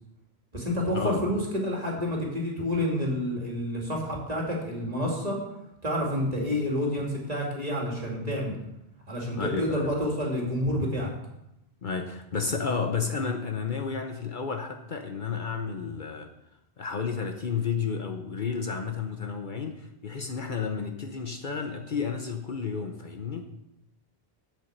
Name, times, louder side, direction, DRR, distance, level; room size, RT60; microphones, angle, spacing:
voice 1, 0.5-5.4 5.8-8.6 9.1-11.1, left 1 dB, 40° right, -2 dB, 2.7 m, -29 dB
voice 2, 9.4-9.9 11.8-16.3 16.8-23.5, left 5 dB, 50° left, 4 dB, 0.9 m, -31 dB
8.1 x 7.6 x 6.7 m, 0.87 s
omnidirectional pair, 1.1 m